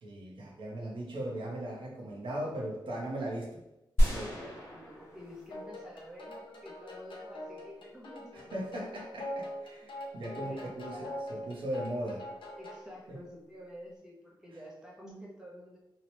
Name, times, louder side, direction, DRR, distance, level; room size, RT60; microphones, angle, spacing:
voice 1, 0.0-3.6 4.0-4.5 8.3-12.3 13.1-13.2, right 1 dB, 75° right, -3 dB, 0.7 m, -38 dB
sound 1, 4.0-6.3, equal, 25° left, 1.1 m, -31 dB
voice 2, 4.2-8.9 10.3-10.6 10.9-11.2 12.6-15.8, equal, 5° right, -4 dB, 0.6 m, -49 dB
sound 2, 5.5-12.9, left 1 dB, 85° left, 0.6 m, -43 dB
2.8 x 2.1 x 2.9 m, 0.91 s
wide cardioid pair, 160°, 9 cm